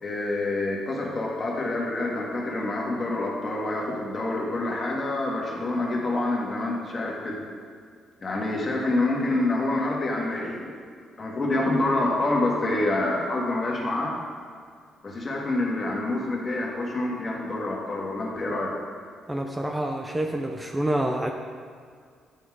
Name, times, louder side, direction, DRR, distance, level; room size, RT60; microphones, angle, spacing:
voice 1, 0.0-7.4 8.2-10.7 11.2-14.2 15.0-18.7, left 2 dB, 35° left, -3 dB, 1.6 m, -27 dB
voice 2, 19.3-21.3, right 1 dB, 15° right, 3 dB, 0.5 m, -27 dB
9.1 x 3.7 x 4.7 m, 2.1 s
cardioid pair, 90°, 0 cm